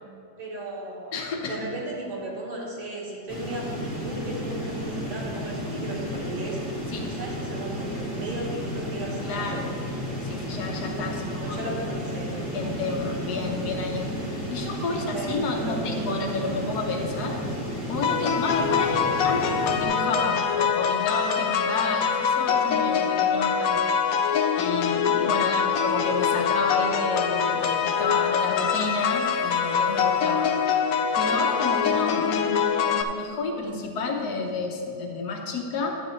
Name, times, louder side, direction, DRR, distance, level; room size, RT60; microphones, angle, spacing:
voice 1, 0.4-1.1 1.4-3.7 3.9-6.8 7.1-9.6 11.2-12.3 14.9-16.2 19.0-19.2 25.5-25.6, right 1 dB, 85° right, -4 dB, 2.5 m, -36 dB
voice 2, 1.1-1.7 6.9-7.2 9.2-9.7 10.2-11.6 12.5-17.4 17.9-35.9, left 3 dB, 60° left, 2 dB, 1.5 m, -30 dB
sound 1, 3.3-19.8, equal, 25° right, 2.1 m, -32 dB
sound 2, 18.0-33.0, left 7 dB, 80° left, 0.8 m, -24 dB
10.5 x 10.0 x 3.2 m, 2.5 s
omnidirectional pair, 2.1 m